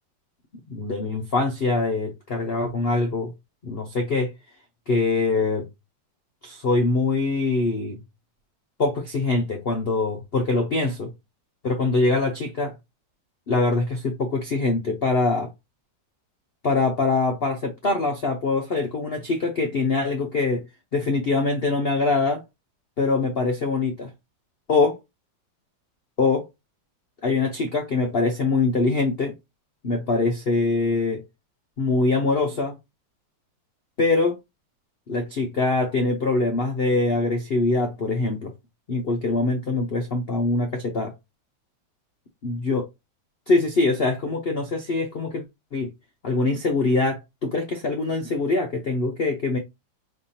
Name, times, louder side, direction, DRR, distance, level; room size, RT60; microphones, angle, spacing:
voice 1, 0.7-3.3 3.6-4.3 4.9-5.7 6.4-8.0 8.8-11.1 11.6-12.7 13.5-15.5 16.6-20.6 20.9-22.4 23.0-24.1 24.7-25.0 26.2-26.5 27.2-29.3 29.8-31.2 31.8-32.8 34.0-34.4 35.1-38.5 38.9-41.1 42.4-42.8 43.5-45.4 45.7-45.9 46.2-49.6, left 3 dB, 55° left, 0.6 m, -23 dB
5.4 x 3.4 x 2.7 m
omnidirectional pair, 2.0 m